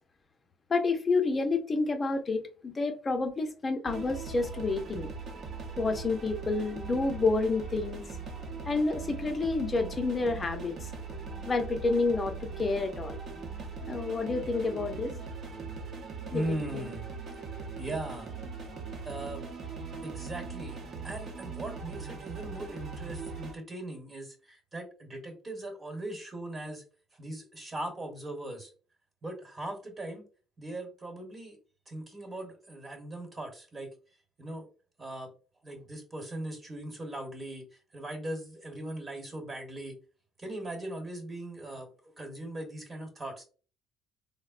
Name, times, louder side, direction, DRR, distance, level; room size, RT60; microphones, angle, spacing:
voice 1, 0.7-5.1 5.8-8.0 8.7-10.9 11.4-13.2 13.9-15.1 16.3-16.4 16.7-16.9, left 3 dB, 30° left, 6 dB, 0.6 m, -29 dB
sound 1, 3.9-23.5, right 4 dB, 55° right, 0.7 m, -40 dB
voice 2, 16.3-17.1 17.8-18.3 19.0-19.5 20.0-26.8 27.1-28.7 29.2-30.3 30.6-31.6 31.9-33.9 34.4-34.7 35.0-35.3 35.6-37.7 37.9-40.0 40.4-41.9 42.2-43.4, right 1 dB, 30° right, 2 dB, 1.2 m, -39 dB
3.5 x 2.1 x 2.4 m, 0.37 s
supercardioid pair, 90°, 0 cm